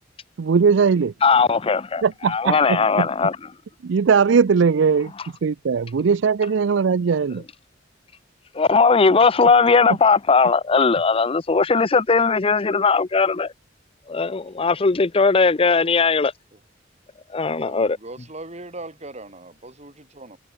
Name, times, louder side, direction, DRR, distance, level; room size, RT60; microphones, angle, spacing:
voice 1, 0.4-1.1 2.0-3.1 3.8-5.1 5.4-7.4, right 5 dB, 70° right, 0.4 m, -19 dB
voice 2, 1.2-3.4 8.5-13.5 14.1-16.3 17.3-18.0, left 4 dB, 30° left, 0.6 m, -18 dB
voice 3, 17.5-20.4, right 2 dB, 35° right, 7.7 m, -39 dB
head